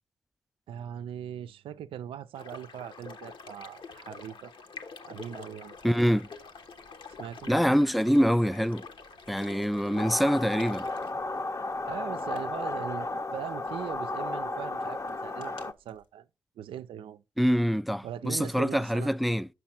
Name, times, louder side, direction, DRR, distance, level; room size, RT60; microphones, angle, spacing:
voice 1, 0.7-4.5 5.0-6.0 7.2-7.5 9.9-10.2 11.9-16.2 16.6-17.2 18.0-19.1, right 10 dB, 85° right, 0.4 m, -40 dB
sound 1, 2.3-11.1, left 4 dB, 70° left, 1.0 m, -46 dB
sound 2, 5.7-16.1, left 2 dB, 85° left, 2.7 m, -63 dB
voice 2, 5.8-6.3 7.5-8.9 9.3-10.9 17.4-19.5, equal, ahead, 0.4 m, -25 dB
sound 3, 10.0-15.7, left 2 dB, 35° left, 0.6 m, -33 dB
8.0 x 5.9 x 4.3 m
supercardioid pair, 40°, 9 cm